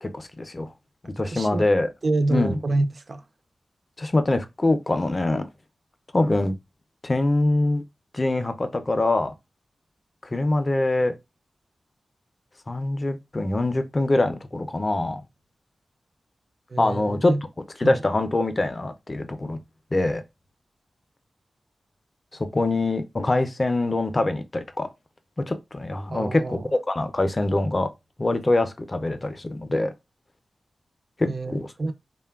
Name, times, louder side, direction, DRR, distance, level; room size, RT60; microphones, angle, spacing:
voice 1, 0.0-0.7 1.0-1.9 2.3-2.6 4.0-5.4 6.1-6.5 7.0-7.8 8.1-9.3 10.3-11.1 12.7-15.2 16.8-17.3 17.8-19.6 19.9-20.2 22.4-24.9 25.4-27.9 28.2-29.9 31.2-31.6, left 2 dB, 30° left, 0.4 m, -24 dB
voice 2, 1.3-1.6 2.0-3.2 16.7-17.4 17.8-18.0 26.1-26.7 31.3-31.9, right 2 dB, 50° right, 0.4 m, -27 dB
3.1 x 2.1 x 2.2 m
wide cardioid pair, 95°, 0 cm